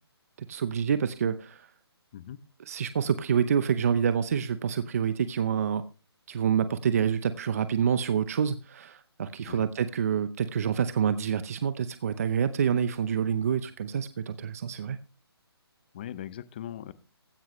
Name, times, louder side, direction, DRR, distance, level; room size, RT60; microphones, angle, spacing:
voice 1, 0.5-1.7 2.7-5.8 6.3-15.0, right 7 dB, 35° right, 12 dB, 0.6 m, -27 dB
voice 2, 15.9-16.9, left 11 dB, 20° left, 15 dB, 0.6 m, -39 dB
15.5 x 10.5 x 3.1 m, 0.33 s
hypercardioid pair, 165°, 14 cm